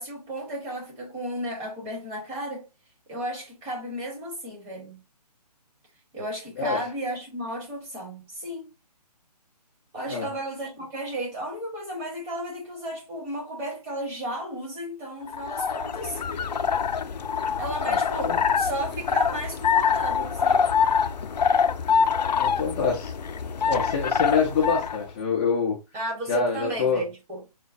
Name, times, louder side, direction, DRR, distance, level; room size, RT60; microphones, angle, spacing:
voice 1, 0.0-2.7 3.1-5.0 6.1-8.7 9.9-16.2 17.6-20.7 25.9-27.4, right 1 dB, 15° right, 1.1 m, -33 dB
sound 1, 15.3-25.0, left 6 dB, 85° left, 0.4 m, -25 dB
voice 2, 22.4-23.1 23.7-25.7 26.3-27.0, left 5 dB, 10° left, 0.3 m, -25 dB
4.7 x 2.1 x 2.6 m
hypercardioid pair, 150°, 21 cm